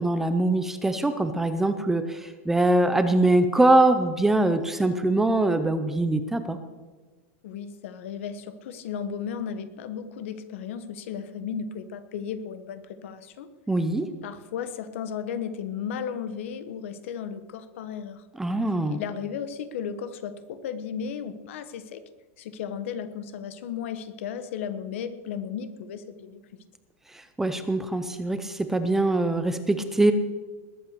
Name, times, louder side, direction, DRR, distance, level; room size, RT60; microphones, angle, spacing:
voice 1, 0.0-6.6 13.7-14.1 18.4-19.0 27.4-30.1, right 2 dB, 5° right, 9 dB, 0.6 m, -23 dB
voice 2, 7.4-13.5 14.2-18.2 18.9-22.0 22.4-26.6, left 7 dB, 60° left, 12 dB, 1.2 m, -35 dB
20.0 x 8.7 x 6.7 m, 1.3 s
supercardioid pair, 175°, 8 cm